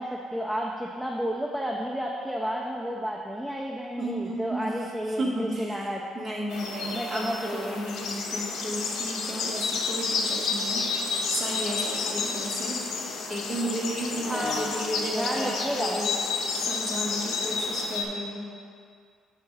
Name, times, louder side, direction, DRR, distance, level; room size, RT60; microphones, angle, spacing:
voice 1, 0.0-6.0 6.9-7.8 14.3-14.5 15.1-16.0, equal, ahead, -2 dB, 0.3 m, -31 dB
voice 2, 4.0-10.9 11.3-12.8 13.3-16.2 16.6-18.5, right 1 dB, 20° right, -4 dB, 1.0 m, -33 dB
sound 1, 6.5-18.1, left 4 dB, 70° left, 0.6 m, -30 dB
6.1 x 3.7 x 5.5 m, 2.3 s
cardioid pair, 175°, 0 cm